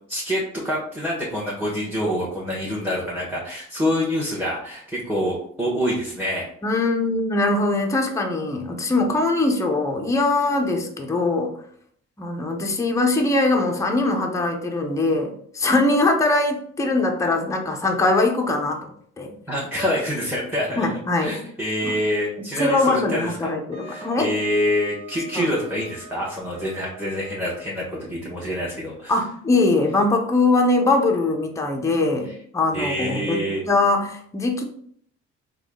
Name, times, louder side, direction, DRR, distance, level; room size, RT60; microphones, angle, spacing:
voice 1, 0.1-6.5 19.5-20.9 21.2-23.5 23.8-29.2 32.7-33.6, equal, 5° right, -5 dB, 1.2 m, -26 dB
voice 2, 6.6-11.5 12.2-18.9 19.2-19.3 20.8-21.4 21.8-21.9 22.6-24.3 25.3-25.5 29.1-34.6, left 2 dB, 10° left, 2 dB, 0.6 m, -22 dB
Wind instrument woodwind instrument, 23.7-28.1, right 5 dB, 60° right, 1.2 m, -44 dB
3.5 x 2.3 x 3.6 m, 0.62 s
cardioid pair, 90°, 30 cm